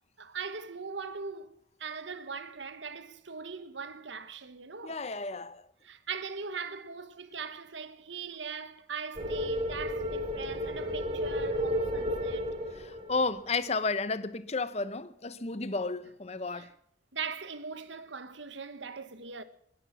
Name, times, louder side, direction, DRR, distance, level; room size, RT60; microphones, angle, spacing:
voice 1, 0.2-1.5 1.8-5.1 5.8-12.6 16.5-16.7 17.1-19.4, right 5 dB, 80° right, 1.3 m, -40 dB
voice 2, 4.8-5.7 12.7-16.7, left 3 dB, 35° left, 0.8 m, -32 dB
sound 1, 9.1-13.6, equal, 30° right, 3.3 m, -33 dB
20.5 x 11.0 x 6.0 m
head